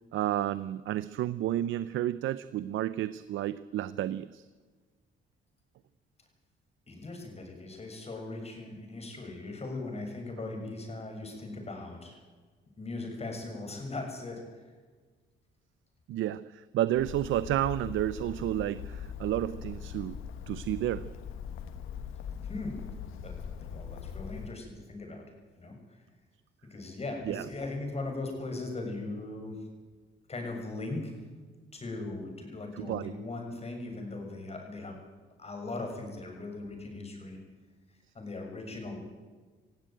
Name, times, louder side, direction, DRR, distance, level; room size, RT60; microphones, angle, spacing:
voice 1, 0.1-4.5 16.1-20.2 20.5-21.1 27.3-27.4 32.7-33.1, right 13 dB, 80° right, 16 dB, 0.6 m, -31 dB
voice 2, 6.9-12.2 12.8-14.4 22.4-22.8 23.2-25.2 25.6-25.7 26.7-29.6 30.3-31.1 31.7-35.0 35.4-37.4 38.2-39.0, left 2 dB, 30° left, 3 dB, 7.0 m, -39 dB
Bird, 16.9-24.6, left 7 dB, 90° left, 1.4 m, -41 dB
19.0 x 16.0 x 9.1 m, 1.4 s
cardioid pair, 90°, 20 cm